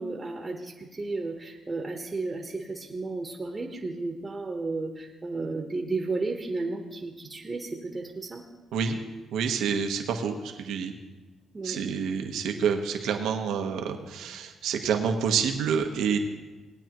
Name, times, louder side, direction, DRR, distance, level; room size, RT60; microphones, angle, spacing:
voice 1, 0.0-8.4 11.5-11.8, right 3 dB, 25° right, 2 dB, 1.2 m, -33 dB
voice 2, 9.3-10.9 11.6-16.2, right 6 dB, 80° right, 5 dB, 1.1 m, -28 dB
18.5 x 9.0 x 3.0 m, 1.2 s
cardioid pair, 90°, 0 cm